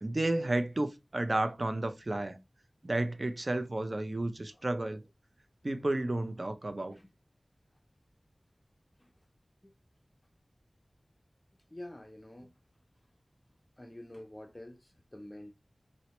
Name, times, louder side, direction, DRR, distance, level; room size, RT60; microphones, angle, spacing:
voice 1, 0.0-2.4 2.8-5.0 5.6-7.0, right 2 dB, 50° right, 0.4 m, -32 dB
voice 2, 4.5-5.1 6.9-7.1 9.0-9.3 9.6-9.7 11.7-12.5 13.8-15.5, left 1 dB, 25° left, 0.5 m, -49 dB
4.2 x 2.1 x 2.8 m
wide cardioid pair, 50°, 0 cm